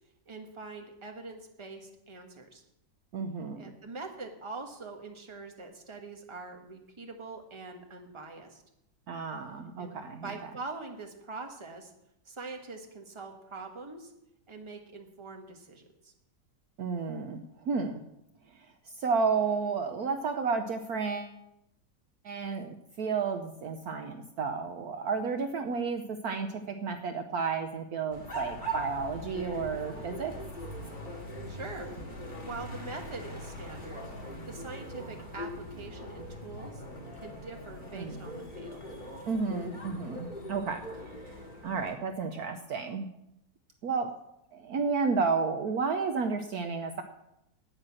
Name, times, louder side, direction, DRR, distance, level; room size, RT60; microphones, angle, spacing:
voice 1, 0.3-2.6 3.5-8.6 9.8-11.9 12.2-14.1 14.5-16.1 31.5-34.0 34.5-36.8 37.2-38.8, right 3 dB, 15° right, 3 dB, 1.4 m, -43 dB
voice 2, 3.1-3.7 9.1-10.5 16.8-18.0 18.9-21.3 22.2-30.3 37.9-38.2 39.3-41.3 41.6-43.1 43.8-44.1 44.5-47.0, right 5 dB, 65° right, 6 dB, 1.2 m, -32 dB
sound 1, 28.1-41.9, equal, 25° left, 2.4 m, -41 dB
9.8 x 9.2 x 7.6 m, 0.83 s
omnidirectional pair, 1.9 m